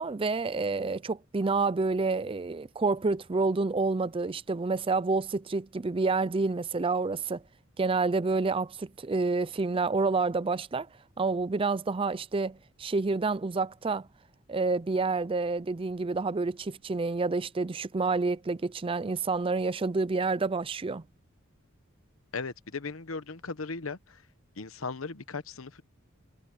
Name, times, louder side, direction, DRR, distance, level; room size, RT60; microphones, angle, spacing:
voice 1, 0.0-7.4 7.8-10.9 11.2-14.1 14.5-21.0, right 3 dB, 25° right, 0.5 m, -28 dB
voice 2, 22.3-24.2 24.6-25.8, left 4 dB, 85° left, 1.1 m, -37 dB
head